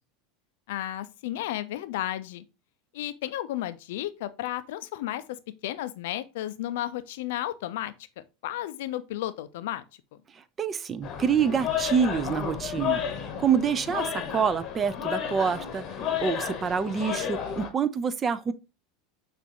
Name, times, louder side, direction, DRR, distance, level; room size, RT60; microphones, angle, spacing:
voice 1, 0.7-2.4 2.9-5.4 5.6-9.8, left 13 dB, 75° left, 0.4 m, -33 dB
voice 2, 10.6-13.0 13.4-18.5, right 7 dB, 30° right, 0.4 m, -27 dB
sound 1, 11.0-17.7, left 8 dB, 45° left, 0.8 m, -32 dB
6.1 x 2.5 x 2.8 m
hypercardioid pair, 100°, 0 cm